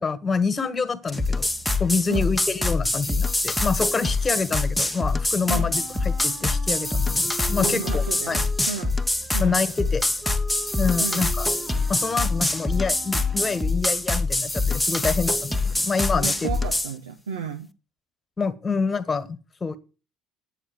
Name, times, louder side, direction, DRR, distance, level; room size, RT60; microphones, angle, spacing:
voice 1, 0.0-1.5 1.8-8.4 9.4-10.0 10.8-11.4 11.9-16.3 18.4-19.8, left 4 dB, 25° left, 12 dB, 1.6 m, -27 dB
sound 1, 1.1-16.9, left 2 dB, 5° left, 1.1 m, -25 dB
Wind instrument woodwind instrument, 5.7-13.8, right 2 dB, 20° right, 1.1 m, -42 dB
voice 2, 7.6-8.9 9.3-9.6 11.0-11.3 16.1-17.7, right 5 dB, 80° right, 5 dB, 1.1 m, -33 dB
9.5 x 8.1 x 7.4 m, 0.33 s
figure-of-eight pair, 60°, 0 cm